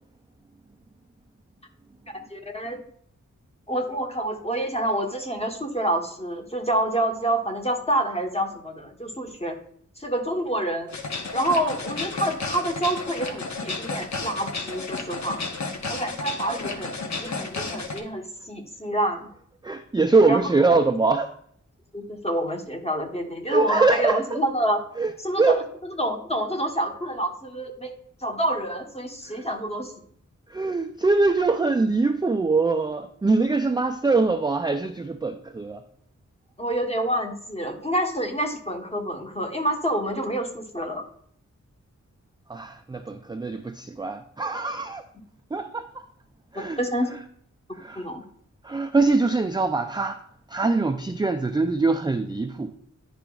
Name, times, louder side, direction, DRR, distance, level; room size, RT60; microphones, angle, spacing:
voice 1, 2.3-2.8 3.7-9.6 10.0-10.9 11.3-15.4 15.9-19.3 20.3-20.5 21.9-24.8 25.2-27.9 28.2-29.9 36.6-41.0 46.8-47.1 48.0-48.2, right 1 dB, 20° left, 2 dB, 1.1 m, -27 dB
sound 1, 10.9-18.0, left 3 dB, 65° left, 1.0 m, -32 dB
voice 2, 19.6-21.3 23.5-24.4 25.0-25.1 25.4-25.6 29.3-29.4 30.5-35.8 42.5-45.0 45.5-46.0 46.5-46.8 47.8-48.1 48.6-50.2 50.5-52.7, right 3 dB, 15° right, 5 dB, 0.3 m, -23 dB
10.0 x 4.9 x 2.3 m, 0.64 s
wide cardioid pair, 90°, 31 cm